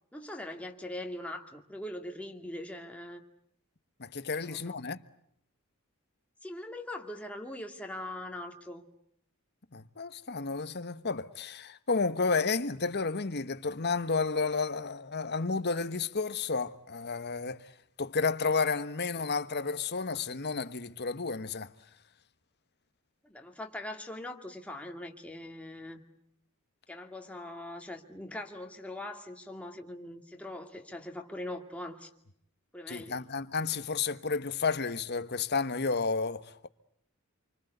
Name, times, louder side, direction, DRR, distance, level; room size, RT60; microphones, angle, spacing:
voice 1, 0.1-3.2 4.4-4.8 6.4-8.8 23.2-26.0 26.9-32.1 32.7-33.2, left 1 dB, 5° left, 2.4 m, -41 dB
voice 2, 4.0-5.0 9.7-17.7 18.0-21.7 32.9-36.7, left 4 dB, 50° left, 1.2 m, -31 dB
27.5 x 25.0 x 8.0 m
head